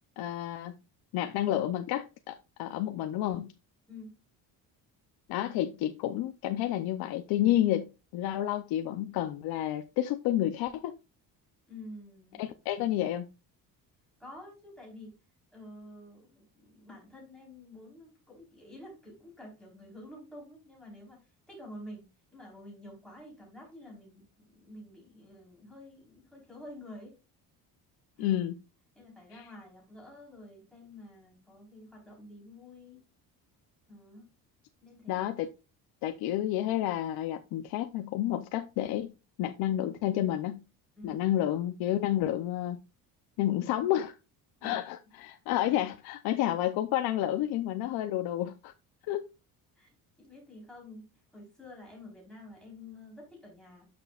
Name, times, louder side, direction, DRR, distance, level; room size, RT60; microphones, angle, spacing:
voice 1, 0.2-0.7 1.1-3.5 5.3-7.9 8.1-11.0 12.4-13.3 28.2-28.5 35.1-35.5 36.0-39.1 39.4-40.6 41.0-42.8 43.4-44.2 44.6-48.7 49.1-49.2, left 13 dB, 80° left, 0.7 m, -30 dB
voice 2, 11.7-12.4 14.2-15.2 15.5-22.1 22.3-27.1 28.2-28.4 28.9-33.0 33.9-34.3 34.8-35.3 41.0-41.3 44.6-44.9 49.8-53.9, left 1 dB, ahead, 4.1 m, -49 dB
12.5 x 6.1 x 2.4 m
cardioid pair, 175°, 37 cm